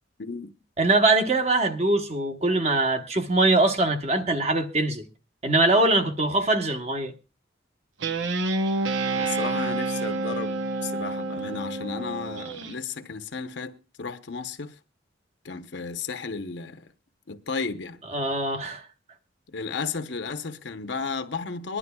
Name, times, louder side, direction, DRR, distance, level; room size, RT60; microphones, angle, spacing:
voice 1, 0.2-0.5 9.1-14.7 15.4-16.9 17.3-18.0 19.5-21.8, left 4 dB, 65° left, 0.8 m, -33 dB
voice 2, 0.8-5.0 5.4-7.1 18.1-18.8, right 2 dB, 35° right, 1.0 m, -22 dB
Guitar, 8.0-12.8, right 2 dB, 90° right, 0.8 m, -28 dB
22.5 x 11.0 x 2.3 m
head